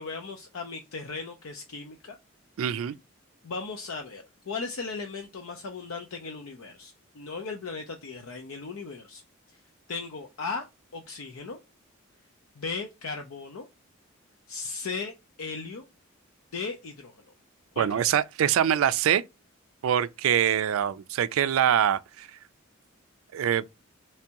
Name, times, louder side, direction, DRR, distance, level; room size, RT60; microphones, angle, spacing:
voice 1, 0.0-2.2 3.4-9.2 9.9-10.6 10.9-11.6 12.6-13.7 14.5-15.8 16.5-17.2 17.7-18.1, left 4 dB, 80° left, 0.5 m, -37 dB
voice 2, 2.6-2.9 17.8-19.2 19.8-22.3 23.3-23.6, right 9 dB, 75° right, 0.3 m, -24 dB
3.5 x 3.2 x 2.8 m
head